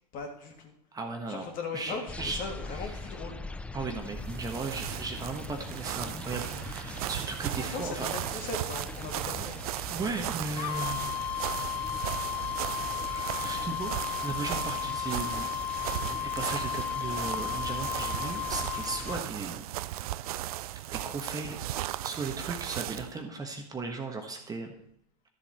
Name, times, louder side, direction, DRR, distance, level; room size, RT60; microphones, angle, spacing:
voice 1, 0.1-0.7 1.3-3.4 7.6-9.6, left 4 dB, 40° left, 3 dB, 2.6 m, -39 dB
voice 2, 0.9-1.4 1.7-2.4 3.7-8.1 9.9-11.4 12.9-13.9 14.2-15.5 16.0-19.6 20.9-24.8, right 3 dB, 20° right, 4 dB, 1.4 m, -36 dB
sound 1, 2.1-19.2, left 3 dB, 5° left, 0.5 m, -43 dB
sound 2, 4.0-23.1, right 14 dB, 65° right, 0.5 m, -37 dB
sound 3, 10.5-19.2, left 9 dB, 75° left, 0.4 m, -34 dB
12.5 x 7.2 x 4.4 m, 0.74 s
hypercardioid pair, 105°, 21 cm